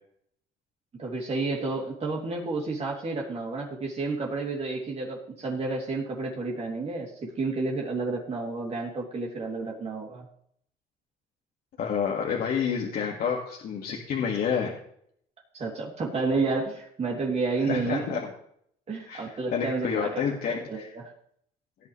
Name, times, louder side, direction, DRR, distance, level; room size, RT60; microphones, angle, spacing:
voice 1, 1.0-7.1 7.4-10.2 15.5-18.2 18.9-20.2 20.7-21.1, right 3 dB, 40° right, -2 dB, 3.0 m, -30 dB
voice 2, 11.8-14.7 17.7-18.3 19.1-19.2 19.5-20.9, left 7 dB, 60° left, -1 dB, 2.0 m, -29 dB
18.0 x 9.0 x 3.3 m, 0.67 s
cardioid pair, 110°, 17 cm